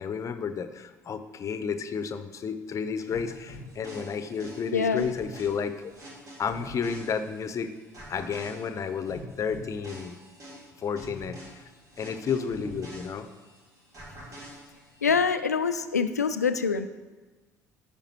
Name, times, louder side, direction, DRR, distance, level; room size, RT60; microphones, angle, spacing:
voice 1, 0.0-5.8 6.4-7.7 8.1-10.1 10.8-11.6 12.0-13.3, left 6 dB, 40° left, 11 dB, 0.7 m, -31 dB
sound 1, 3.1-7.6 7.9-13.6 13.9-15.1, equal, 40° right, 2.8 m, -45 dB
voice 2, 4.7-5.1 15.0-16.9, left 5 dB, 85° left, 10 dB, 0.3 m, -25 dB
14.0 x 5.1 x 3.0 m, 1.3 s
figure-of-eight pair, 55°, 8 cm